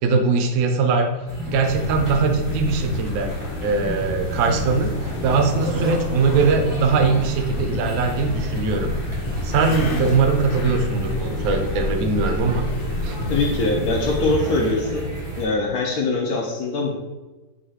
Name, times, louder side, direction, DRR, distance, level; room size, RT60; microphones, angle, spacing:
voice 1, 0.0-1.2 1.5-3.3 3.6-8.9 9.4-12.7 13.0-13.2, right 4 dB, 70° right, 5 dB, 0.9 m, -21 dB
sound 1, 1.3-15.4, equal, 25° right, 0.7 m, -31 dB
sound 2, 1.6-14.3, left 2 dB, 85° left, 1.3 m, -31 dB
Zipper (clothing), 3.0-3.1 3.7-6.6 7.6-10.5 11.5-11.8 12.3-12.4, equal, 40° left, 0.8 m, -37 dB
voice 2, 13.3-15.1 15.4-17.0, left 2 dB, 70° left, 0 dB, 0.9 m, -22 dB
4.0 x 2.6 x 4.6 m, 1.2 s
omnidirectional pair, 1.9 m